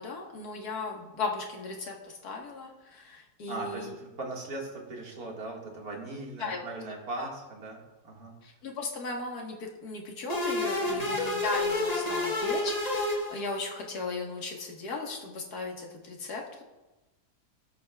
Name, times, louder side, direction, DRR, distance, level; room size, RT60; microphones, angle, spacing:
voice 1, 0.0-4.0 6.4-6.7 7.2-7.3 8.4-16.6, left 3 dB, 70° left, 0 dB, 2.0 m, -36 dB
voice 2, 3.5-8.4 10.9-11.2, right 2 dB, 65° right, -1 dB, 2.5 m, -39 dB
sound 1, 10.3-13.9, left 2 dB, 25° left, 1.3 m, -30 dB
18.0 x 8.4 x 2.3 m, 1.1 s
omnidirectional pair, 1.7 m